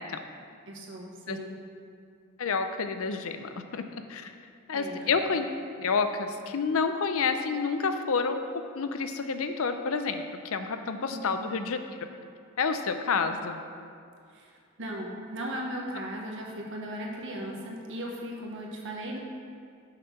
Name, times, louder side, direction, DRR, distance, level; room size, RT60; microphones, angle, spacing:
voice 1, 0.7-1.5 4.7-5.1 11.1-11.5 13.3-13.4 14.3-19.2, equal, 60° right, -1 dB, 1.3 m, -37 dB
voice 2, 2.4-4.3 4.7-11.8 12.6-13.6, left 5 dB, 70° left, 8 dB, 0.6 m, -29 dB
6.7 x 5.7 x 5.8 m, 2.4 s
head